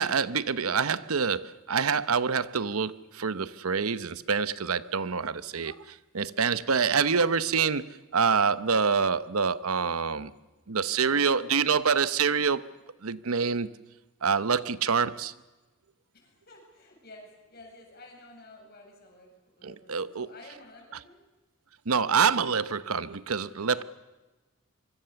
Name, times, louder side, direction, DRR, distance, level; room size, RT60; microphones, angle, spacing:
voice 1, 0.0-10.3 10.7-12.6 13.0-13.7 14.2-15.3 19.6-20.3 21.9-23.8, right 6 dB, 90° right, 0.9 m, -26 dB
voice 2, 11.0-11.7 16.1-21.2 23.4-23.9, left 2 dB, 45° left, 7.5 m, -52 dB
25.5 x 24.0 x 7.0 m
head